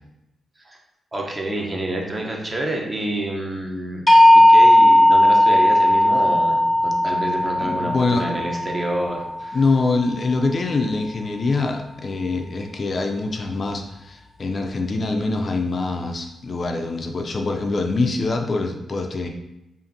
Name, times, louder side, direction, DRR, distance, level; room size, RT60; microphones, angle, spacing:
voice 1, 1.1-4.0 4.3-9.6, right 1 dB, 25° right, 0 dB, 0.7 m, -28 dB
sound 1, 4.1-10.0, left 1 dB, 5° left, 0.7 m, -16 dB
voice 2, 7.6-8.3 9.5-19.3, left 3 dB, 40° left, 3 dB, 0.4 m, -24 dB
5.1 x 2.5 x 2.6 m, 0.90 s
cardioid pair, 105°, 0 cm